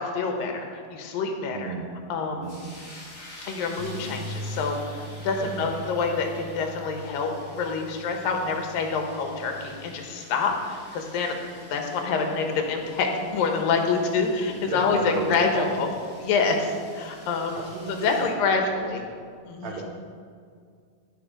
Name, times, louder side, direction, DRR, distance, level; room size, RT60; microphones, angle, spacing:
voice 1, 0.0-1.7 2.1-2.5 3.5-11.4 11.7-15.9 16.2-17.6 18.0-19.0 19.5-19.7, left 4 dB, 85° left, 3 dB, 2.9 m, -26 dB
voice 2, 1.5-1.9 2.4-2.8 5.4-5.7 14.5-15.7 17.5-18.3 19.6-19.9, right 3 dB, 70° right, 1 dB, 1.7 m, -33 dB
sound 1, 2.4-18.3, left 1 dB, 35° left, 3.3 m, -49 dB
Bass guitar, 3.8-10.0, right 1 dB, 90° right, 1.4 m, -41 dB
17.5 x 6.0 x 5.1 m, 2.2 s
omnidirectional pair, 3.9 m